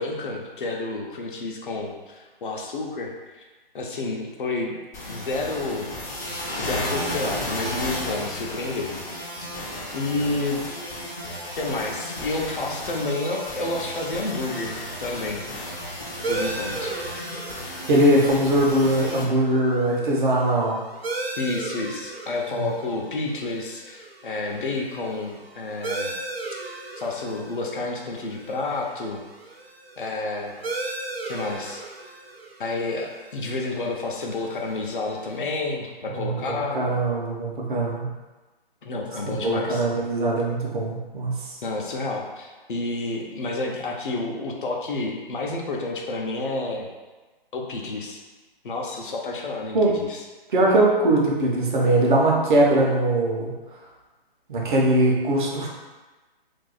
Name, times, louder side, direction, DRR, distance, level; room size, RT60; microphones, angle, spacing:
voice 1, 0.0-3.5 3.7-4.7 5.1-5.9 6.6-8.9 9.4-9.5 9.9-10.6 11.6-14.7 15.0-15.4 16.3-17.0 21.4-26.1 27.0-29.2 30.0-30.5 31.2-31.8 32.6-36.8 38.8-39.8 41.6-46.9 47.5-48.2 48.6-50.2, left 2 dB, 60° left, 0 dB, 0.7 m, -30 dB
sound 1, 4.9-19.2, left 1 dB, 15° left, 0.5 m, -33 dB
sound 2, 16.2-35.4, right 2 dB, 90° right, 0.6 m, -37 dB
voice 2, 17.9-20.8 22.5-22.7 36.1-38.1 39.2-41.6 49.7-49.9 50.5-53.5 54.5-55.7, right 1 dB, 55° right, -2 dB, 0.9 m, -21 dB
2.6 x 2.3 x 3.9 m, 1.2 s
figure-of-eight pair, 140°, 30 cm